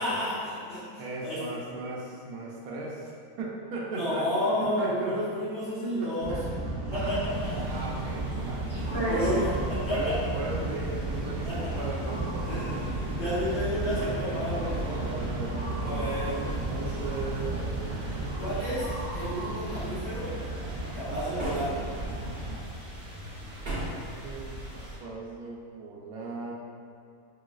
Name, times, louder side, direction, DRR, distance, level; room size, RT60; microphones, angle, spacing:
voice 1, 0.0-0.8 1.2-1.4 3.9-6.3 6.9-7.2 7.4-7.6 8.7-8.8 9.1-9.5 9.8-10.1 11.4-11.7 12.4-12.8 13.2-15.0 15.8-16.4 18.4-18.9 19.1-20.3 20.9-21.7, equal, 50° left, -14 dB, 1.6 m, -31 dB
voice 2, 1.0-3.1 3.4-5.4 5.8-6.4 6.9-7.2 7.7-8.6 9.1-9.5 9.9-12.6 13.9-14.3 15.0-19.1 20.9-21.2 23.4-24.6 25.0-26.5, right 2 dB, 85° right, -3 dB, 1.1 m, -38 dB
sound 1, 6.2-22.6, right 2 dB, 70° right, 0.5 m, -33 dB
sound 2, 7.3-25.0, right 1 dB, 20° right, 0.9 m, -40 dB
sound 3, 21.4-22.1 23.6-24.1, right 1 dB, 45° right, 1.0 m, -34 dB
4.5 x 2.0 x 2.3 m, 2.4 s
omnidirectional pair, 1.5 m